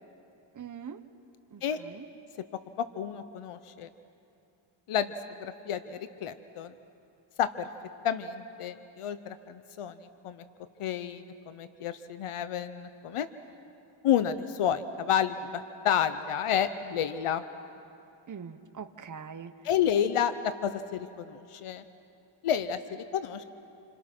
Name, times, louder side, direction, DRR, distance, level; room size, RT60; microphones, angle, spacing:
voice 1, 0.5-1.0 1.5-2.0 18.3-19.5, right 7 dB, 40° right, 8 dB, 1.0 m, -42 dB
voice 2, 2.8-3.9 4.9-5.1 5.4-6.7 7.4-7.7 8.0-9.9 10.2-10.4 10.8-13.3 14.0-17.4 19.6-21.8 22.4-23.4, left 9 dB, 85° left, 11 dB, 0.9 m, -30 dB
28.5 x 26.0 x 6.1 m, 2.7 s
wide cardioid pair, 100°, 50 cm